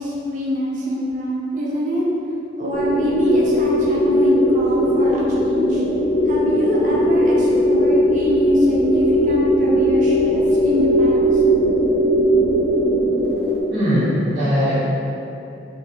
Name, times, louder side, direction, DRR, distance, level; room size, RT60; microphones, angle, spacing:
voice 1, 0.0-2.1 2.6-5.8 6.2-11.4, equal, 45° right, -5 dB, 0.5 m, -23 dB
sound 1, 2.7-13.6, equal, 70° left, 0.5 m, -18 dB
voice 2, 13.7-14.8, equal, 80° right, -16 dB, 1.2 m, -19 dB
2.6 x 2.4 x 2.7 m, 2.8 s
head